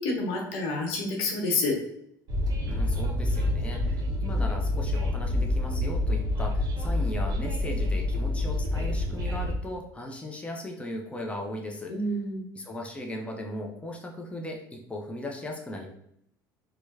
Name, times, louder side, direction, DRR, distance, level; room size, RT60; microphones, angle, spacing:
voice 1, 0.0-1.8 11.9-12.4, left 2 dB, 60° left, 1 dB, 1.0 m, -28 dB
Train, 2.3-9.5, left 1 dB, 40° right, 0.9 m, -27 dB
voice 2, 2.7-11.9 12.5-15.9, left 1 dB, 10° left, 0 dB, 0.7 m, -37 dB
4.5 x 2.2 x 2.7 m, 0.73 s
hypercardioid pair, 65°, 11 cm